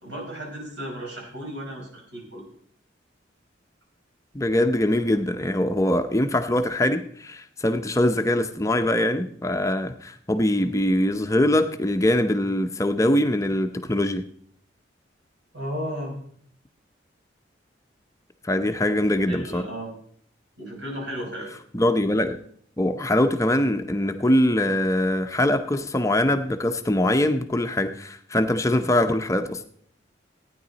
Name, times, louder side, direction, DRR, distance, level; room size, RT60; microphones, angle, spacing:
voice 1, 0.0-2.4 15.5-16.2 18.8-18.9 19.3-19.9 20.6-21.5, equal, 70° right, -1 dB, 5.0 m, -34 dB
voice 2, 4.3-14.2 18.4-19.6 21.7-22.4 22.8-29.6, left 1 dB, 15° left, 7 dB, 0.6 m, -23 dB
15.5 x 9.7 x 4.0 m, 0.62 s
head